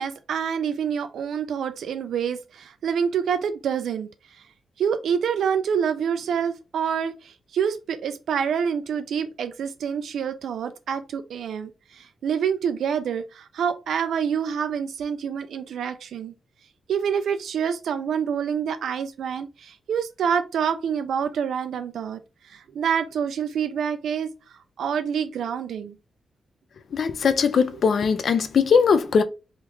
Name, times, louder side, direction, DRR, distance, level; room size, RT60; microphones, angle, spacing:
voice 1, 0.0-4.4 4.8-16.3 16.9-24.3 24.8-26.0, right 7 dB, 80° right, 0.3 m, -27 dB
voice 2, 26.9-29.2, left 6 dB, 50° left, 0.3 m, -20 dB
3.5 x 2.3 x 3.0 m
wide cardioid pair, 165°, 0 cm